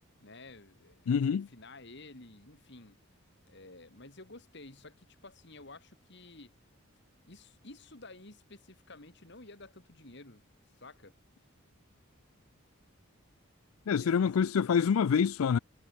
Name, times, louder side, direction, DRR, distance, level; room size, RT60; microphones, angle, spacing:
voice 1, 0.2-3.0 3.5-6.5 7.2-10.4 10.8-11.1 14.0-14.5, left 2 dB, 55° left, 2.9 m, -52 dB
voice 2, 1.1-1.5 13.9-15.6, left 6 dB, 85° left, 0.4 m, -26 dB
head